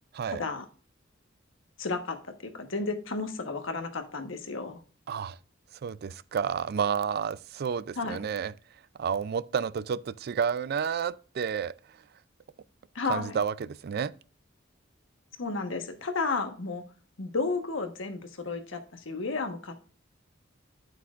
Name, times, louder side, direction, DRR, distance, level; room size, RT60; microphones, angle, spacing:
voice 1, 0.3-0.6 1.8-2.2 2.4-4.8 8.0-8.2 12.9-13.4 15.4-16.8 17.2-19.8, left 3 dB, 80° left, 1.2 m, -32 dB
voice 2, 5.1-5.4 5.8-8.5 9.0-11.7 13.1-14.1, right 7 dB, 55° right, 0.4 m, -30 dB
8.4 x 8.0 x 2.4 m
head